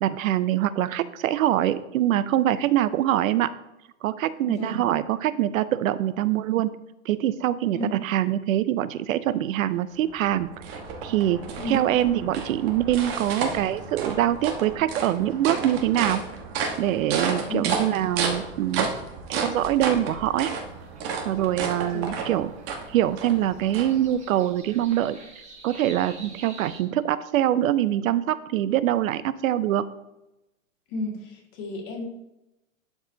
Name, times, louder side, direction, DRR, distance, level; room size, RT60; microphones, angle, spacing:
voice 1, 0.0-3.5 4.0-6.7 7.1-10.5 11.0-16.2 16.8-18.9 19.3-20.6 21.3-22.5 22.9-25.2 25.6-29.8, right 12 dB, 80° right, 15 dB, 0.5 m, -24 dB
voice 2, 4.5-4.8 7.7-7.9 11.6-12.1 17.5-17.6 17.9-18.0 21.9-22.2 30.9-32.0, left 2 dB, 40° left, -1 dB, 2.0 m, -33 dB
sound 1, 9.9-24.4, right 5 dB, 50° right, 1.3 m, -32 dB
sound 2, 20.6-26.8, right 2 dB, 15° right, 1.6 m, -49 dB
11.5 x 4.7 x 2.7 m, 0.93 s
hypercardioid pair, 140°, 40 cm